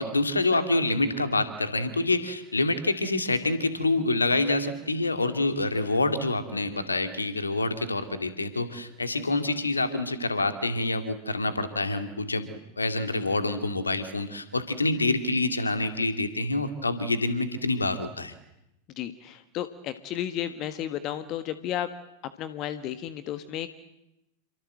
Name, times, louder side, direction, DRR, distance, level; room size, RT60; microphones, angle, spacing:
voice 1, 0.0-18.3, left 2 dB, 80° left, 9 dB, 2.5 m, -27 dB
voice 2, 19.0-21.9 22.4-23.7, left 11 dB, 35° left, 11 dB, 1.5 m, -33 dB
28.0 x 24.5 x 7.8 m, 0.87 s
figure-of-eight pair, 90°, 0 cm